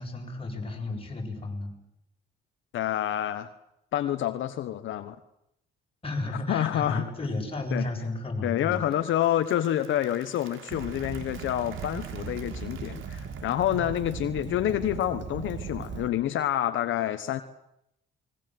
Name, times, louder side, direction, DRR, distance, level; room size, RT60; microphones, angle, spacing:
voice 1, 0.0-1.7 6.0-8.8 13.7-13.8, left 2 dB, 30° left, 2 dB, 7.7 m, -33 dB
voice 2, 2.7-3.5 3.9-5.2 6.5-7.0 7.7-7.9 8.4-17.4, left 12 dB, 80° left, 10 dB, 1.2 m, -28 dB
Applause / Crowd, 8.6-14.7, right 8 dB, 90° right, 3.5 m, -52 dB
Fire, 10.7-16.1, right 6 dB, 65° right, 2.5 m, -38 dB
29.5 x 21.5 x 7.9 m, 0.81 s
cardioid pair, 90°, 20 cm